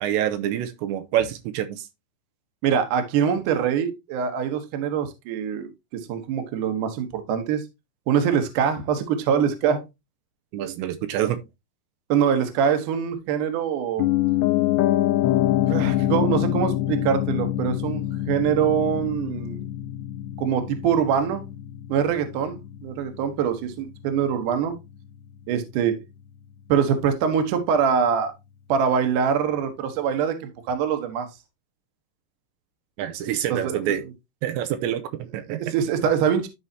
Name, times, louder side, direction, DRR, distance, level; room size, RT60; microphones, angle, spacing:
voice 1, 0.0-1.9 10.5-11.4 33.0-34.0 34.4-35.7, right 11 dB, 85° right, 3.0 m, -27 dB
voice 2, 2.6-7.6 8.1-9.8 12.1-14.1 15.6-19.6 20.4-21.4 21.9-24.8 25.5-26.0 26.7-28.3 28.7-31.3 33.5-33.8 35.5-36.5, right 7 dB, 65° right, 2.2 m, -24 dB
Piano, 14.0-24.0 24.3-24.4, left 14 dB, 80° left, 2.8 m, -25 dB
12.5 x 4.8 x 2.8 m
omnidirectional pair, 5.1 m